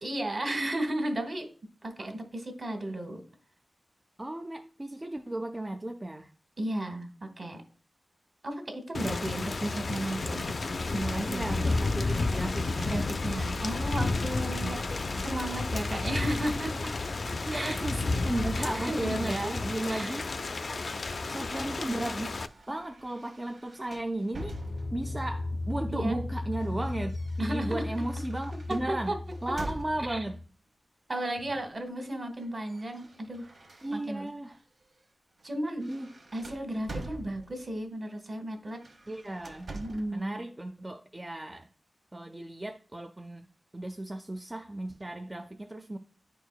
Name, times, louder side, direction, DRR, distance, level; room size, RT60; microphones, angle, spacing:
voice 1, 0.0-1.5 1.8-3.2 6.6-7.1 7.4-7.6 8.4-10.5 10.8-11.6 12.8-14.8 15.2-16.8 17.5-17.9 18.6-19.5 19.9-20.2 25.9-26.2 27.4-27.8 28.9-29.2 30.1-30.2 31.1-33.5 33.9-34.3 35.4-35.8 36.3-38.8 39.7-40.4, right 1 dB, 40° right, 5 dB, 1.1 m, -34 dB
voice 2, 4.2-6.3 11.3-12.9 14.6-15.2 16.0-16.4 17.4-20.3 21.3-22.3 22.7-24.6 24.9-29.1 29.4-30.4 33.8-34.6 35.8-36.1 39.1-39.8 40.1-41.7 42.1-43.5 43.7-46.0, right 1 dB, 20° right, 6 dB, 0.4 m, -35 dB
Thunder / Rain, 8.9-22.5, left 3 dB, 55° left, 0.3 m, -31 dB
sound 1, 22.1-25.2 26.1-30.3 31.4-31.7 32.0-34.3 34.8-35.0 35.4-37.8 38.7-40.2, right 2 dB, 70° right, 1.0 m, -46 dB
sound 2, 24.4-30.5, left 2 dB, 80° left, 0.7 m, -39 dB
9.9 x 4.5 x 2.2 m, 0.40 s
wide cardioid pair, 85°, 0 cm